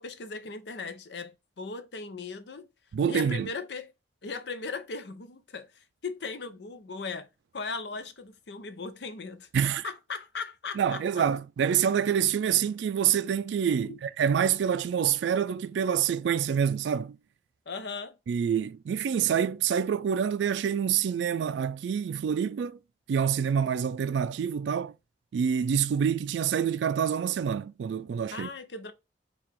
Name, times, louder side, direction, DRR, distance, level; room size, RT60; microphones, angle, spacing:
voice 1, 0.0-2.7 3.1-3.9 4.2-7.3 7.5-11.0 13.8-14.0 17.7-18.2 28.3-28.9, left 4 dB, 70° left, 0.6 m, -38 dB
voice 2, 2.9-3.5 9.5-9.8 10.8-17.2 18.3-22.8 23.1-24.9 25.3-28.5, right 8 dB, 80° right, 0.3 m, -27 dB
4.6 x 2.4 x 3.5 m
head